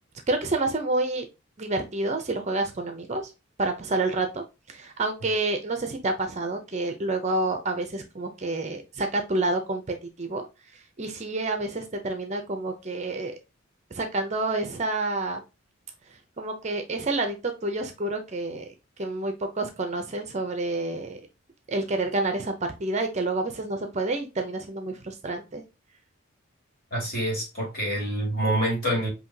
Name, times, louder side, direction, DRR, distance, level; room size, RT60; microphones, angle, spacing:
voice 1, 0.3-1.3 1.6-3.3 3.6-10.4 10.7-13.3 13.9-15.4 16.4-18.7 19.0-21.2 21.7-22.5 22.8-25.6, right 2 dB, 35° right, 0.6 m, -28 dB
voice 2, 26.9-29.1, right 1 dB, 45° left, 2.4 m, -26 dB
5.5 x 2.8 x 2.7 m
head